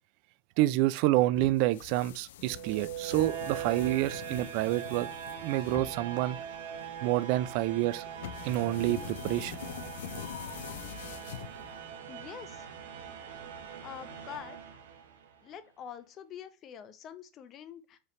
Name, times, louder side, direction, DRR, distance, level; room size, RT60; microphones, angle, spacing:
voice 1, 0.6-5.1 5.4-6.4 7.0-8.0 8.4-9.9, right 16 dB, 55° right, 0.3 m, -28 dB
sound 1, 1.3-11.9, left 11 dB, 80° left, 0.4 m, -44 dB
sound 2, 2.4-15.4, right 8 dB, 85° right, 0.8 m, -42 dB
voice 2, 12.1-12.7 13.8-14.6 15.4-18.0, left 9 dB, 35° left, 0.6 m, -45 dB
4.6 x 3.2 x 3.1 m
supercardioid pair, 120°, 0 cm